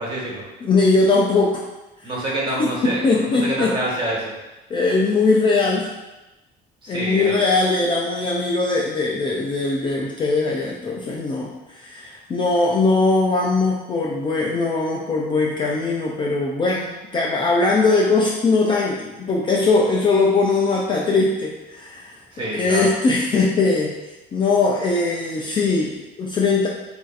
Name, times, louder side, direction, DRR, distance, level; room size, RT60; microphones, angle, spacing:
voice 1, 0.0-0.4 2.0-4.3 6.8-7.4 22.3-22.9, right 1 dB, 25° right, -4 dB, 1.5 m, -26 dB
voice 2, 0.6-1.6 2.6-3.8 4.7-5.9 6.9-22.2 22.6-23.9 24.3-26.7, left 3 dB, 25° left, -2 dB, 0.4 m, -20 dB
7.7 x 2.6 x 2.5 m, 1.0 s
cardioid pair, 145°, 20 cm